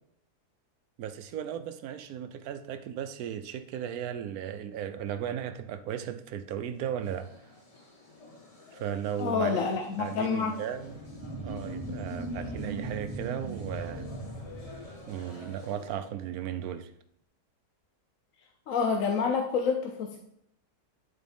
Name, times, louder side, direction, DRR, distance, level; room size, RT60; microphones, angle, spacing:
voice 1, 1.0-7.3 8.7-9.6 10.0-11.0 11.4-14.1 15.1-16.9, right 9 dB, 75° right, 10 dB, 1.0 m, -36 dB
sound 1, 6.9-16.1, left 3 dB, 25° left, 1.1 m, -50 dB
voice 2, 9.2-10.6 18.7-20.2, left 5 dB, 65° left, 4 dB, 1.0 m, -28 dB
sound 2, 10.7-15.7, right 2 dB, 25° right, 0.5 m, -38 dB
10.0 x 4.1 x 3.5 m, 0.74 s
omnidirectional pair, 1.6 m